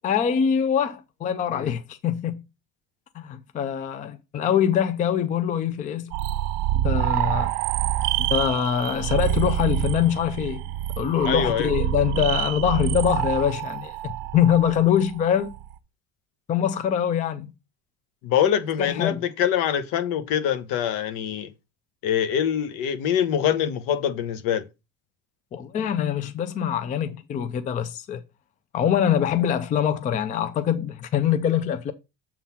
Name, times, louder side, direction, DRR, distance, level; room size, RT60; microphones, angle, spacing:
voice 1, 0.0-2.4 3.1-6.1 6.7-7.5 8.2-10.6 11.0-15.5 16.5-17.5 18.8-19.2 25.5-28.2 28.7-31.9, left 9 dB, 25° left, 0.4 m, -24 dB
sound 1, 6.1-15.7, right 13 dB, 85° right, 0.7 m, -27 dB
voice 2, 11.2-11.7 18.2-21.5 22.0-24.6, left 9 dB, 70° left, 1.1 m, -24 dB
7.3 x 3.9 x 5.6 m
cardioid pair, 175°, 35 cm